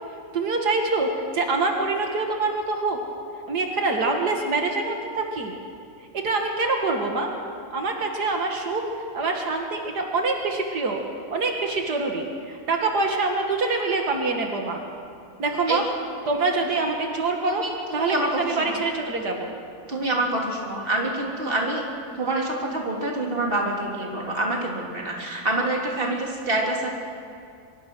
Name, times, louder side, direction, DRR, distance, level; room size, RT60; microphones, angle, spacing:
voice 1, 0.3-3.0 3.5-5.5 6.1-7.3 7.7-11.0 11.3-14.8 15.4-15.8 16.3-17.6 17.9-19.5, right 3 dB, 85° right, 2 dB, 2.4 m, -25 dB
voice 2, 17.5-18.8 19.9-21.8 22.1-26.9, right 2 dB, 35° right, -1 dB, 3.5 m, -26 dB
24.0 x 22.0 x 6.2 m, 2.4 s
omnidirectional pair, 1.7 m